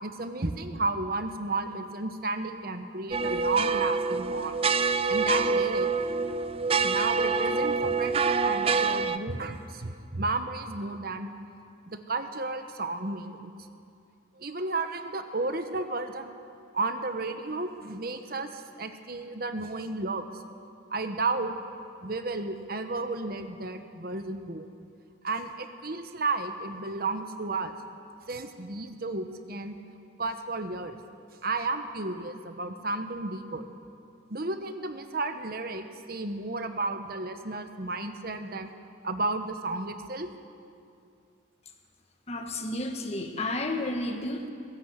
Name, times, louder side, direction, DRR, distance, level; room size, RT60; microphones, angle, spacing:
voice 1, 0.0-4.6 5.1-5.9 6.8-11.3 11.9-13.5 14.4-16.3 16.7-20.2 20.9-21.5 22.0-24.7 25.2-27.7 28.3-29.8 30.2-31.0 31.4-33.7 34.3-38.7 39.0-40.3, right 3 dB, 50° right, 7 dB, 1.2 m, -32 dB
sound 1, 3.1-9.2, right 4 dB, 30° right, 0.5 m, -26 dB
voice 2, 42.3-44.5, left 2 dB, 35° left, 4 dB, 1.6 m, -31 dB
20.5 x 16.5 x 8.1 m, 2.4 s
head